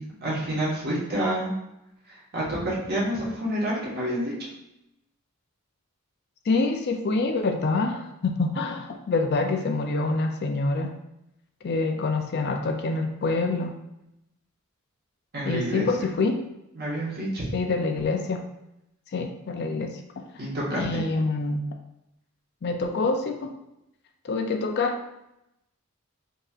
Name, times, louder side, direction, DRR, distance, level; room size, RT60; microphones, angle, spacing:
voice 1, 0.0-1.5 2.1-4.3 15.3-15.9 16.7-17.5 20.4-21.0, right 1 dB, 45° right, -6 dB, 1.4 m, -28 dB
voice 2, 6.5-10.9 11.6-13.7 15.5-16.4 17.5-18.4 19.1-20.2 20.7-21.6 22.6-23.5 24.2-25.0, left 3 dB, 50° left, 4 dB, 0.4 m, -26 dB
5.3 x 2.8 x 2.4 m, 0.85 s
head